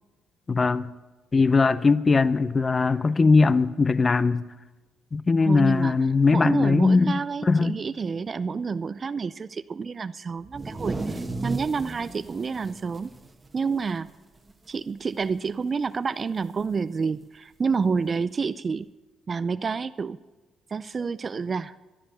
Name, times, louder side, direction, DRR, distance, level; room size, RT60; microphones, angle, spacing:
voice 1, 0.5-0.9 1.3-4.5 5.1-7.8, left 4 dB, 30° left, 16 dB, 0.5 m, -20 dB
voice 2, 5.4-6.0 6.3-13.1 13.5-14.1 14.7-18.9 19.3-20.2 20.7-21.8, right 5 dB, 35° right, 14 dB, 0.4 m, -29 dB
sound 1, 10.4-14.2 14.5-14.6 15.0-15.5 16.6-16.7 17.7-17.8, right 3 dB, 20° right, 1.2 m, -35 dB
13.0 x 11.0 x 6.7 m, 1.2 s
cardioid pair, 85°, 0 cm